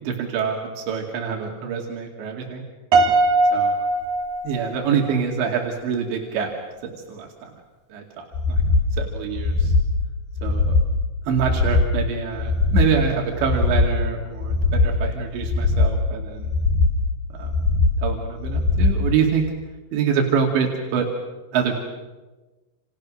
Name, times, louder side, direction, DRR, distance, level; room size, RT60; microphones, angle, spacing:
voice 1, 0.0-2.6 3.5-3.7 4.4-6.5 6.8-7.5 7.9-8.6 9.0-9.7 10.4-10.7 11.3-16.5 17.4-17.5 18.0-19.4 19.9-21.1 21.5-21.8, right 7 dB, 85° right, 1 dB, 4.7 m, -25 dB
Piano, 2.9-5.2, right 2 dB, 50° right, 4.1 m, -20 dB
sound 1, 8.3-8.9 9.3-9.9 10.3-10.9 11.3-11.9 12.3-12.9 13.4-13.9 14.4-15.0 15.4-16.0 16.4-17.0 17.4-18.0 18.4-19.0 19.4-19.5, left 3 dB, 75° left, 6.2 m, -20 dB
29.5 x 28.5 x 6.4 m, 1.2 s
omnidirectional pair, 5.0 m